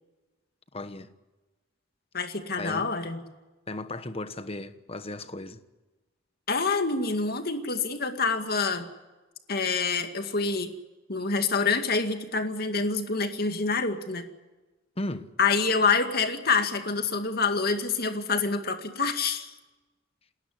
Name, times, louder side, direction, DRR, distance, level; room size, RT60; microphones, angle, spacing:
voice 1, 0.7-1.1 2.6-2.9 3.7-5.6 15.0-15.3, left 2 dB, 30° left, 1.2 m, -35 dB
voice 2, 2.1-3.2 6.5-8.8 9.5-10.7 11.1-14.2 15.4-19.5, left 4 dB, 50° left, 2.2 m, -26 dB
29.0 x 13.0 x 9.5 m
head